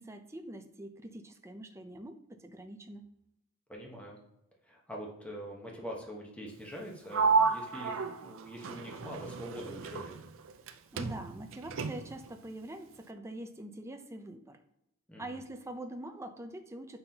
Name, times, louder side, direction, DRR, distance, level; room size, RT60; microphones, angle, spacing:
voice 1, 0.0-3.0 10.9-14.6 15.2-17.0, right 1 dB, 15° right, 5 dB, 0.5 m, -44 dB
voice 2, 3.7-4.2 4.7-10.1 15.1-15.4, equal, 5° left, -1 dB, 1.1 m, -44 dB
Sliding door, 7.1-10.7 11.0-12.3, right 5 dB, 65° right, 0.5 m, -32 dB
7.1 x 5.5 x 2.9 m, 0.85 s
head